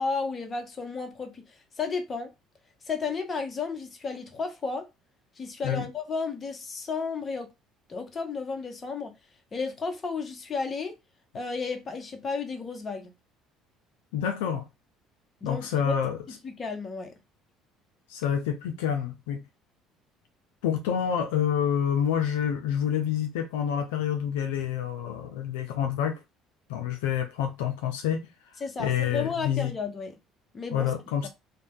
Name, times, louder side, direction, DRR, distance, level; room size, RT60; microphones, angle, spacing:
voice 1, 0.0-1.4 1.8-2.3 2.9-4.9 5.4-7.5 7.9-9.1 9.5-10.9 11.3-13.1 15.4-15.9 16.4-17.1 28.6-30.1 30.5-30.9 31.2-31.3, left 4 dB, 35° left, 0.9 m, -33 dB
voice 2, 14.1-14.7 15.4-16.2 18.1-19.4 20.6-26.2 26.7-28.3 28.8-29.7 30.7-31.3, left 9 dB, 85° left, 0.5 m, -28 dB
2.7 x 2.2 x 3.4 m
supercardioid pair, 75°, 0 cm